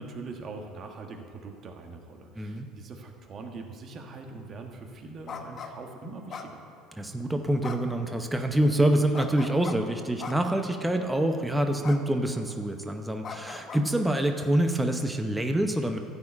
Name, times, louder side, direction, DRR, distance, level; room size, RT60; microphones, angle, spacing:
voice 1, 0.0-6.6, right 3 dB, 45° right, 3 dB, 1.4 m, -42 dB
voice 2, 2.4-2.7 7.0-16.0, right 1 dB, 10° right, 5 dB, 0.8 m, -26 dB
sound 1, 5.3-5.7 6.3-7.0 7.6-8.0 9.1-9.8 10.2-10.6 11.8-12.0 12.3-12.6 13.2-13.8, left 5 dB, 40° left, 0.9 m, -39 dB
13.5 x 4.8 x 8.6 m, 2.3 s
supercardioid pair, 100°, 0 cm